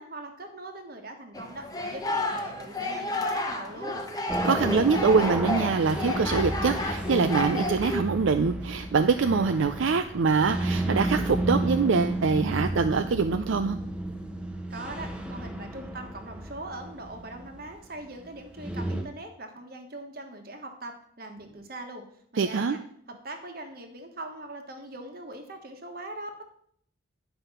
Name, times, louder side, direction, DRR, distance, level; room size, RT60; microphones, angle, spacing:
voice 1, 0.0-4.0 14.7-22.0 22.3-22.8 23.2-26.5, right 2 dB, 50° right, 5 dB, 1.4 m, -41 dB
sound 1, 1.3-8.0, left 2 dB, 20° left, 0.8 m, -31 dB
sound 2, 4.3-19.0, right 1 dB, 5° right, 0.9 m, -32 dB
voice 2, 4.4-13.8 22.4-22.8, right 5 dB, 75° right, 8 dB, 0.5 m, -24 dB
10.0 x 5.5 x 5.5 m, 0.64 s
head